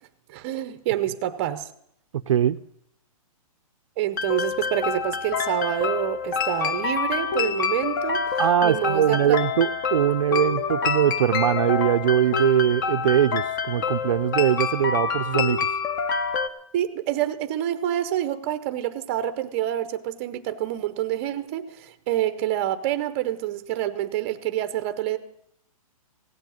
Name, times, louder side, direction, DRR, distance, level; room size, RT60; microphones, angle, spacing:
voice 1, 0.3-1.7 4.0-8.2 8.6-9.4 16.7-25.2, right 12 dB, 20° right, 10 dB, 0.6 m, -27 dB
voice 2, 2.3-2.6 8.4-15.7, right 10 dB, 60° right, 11 dB, 0.5 m, -21 dB
sound 1, 4.2-16.5, left 6 dB, 30° left, 0.8 m, -27 dB
16.5 x 7.4 x 9.2 m, 0.72 s
hypercardioid pair, 170°, 19 cm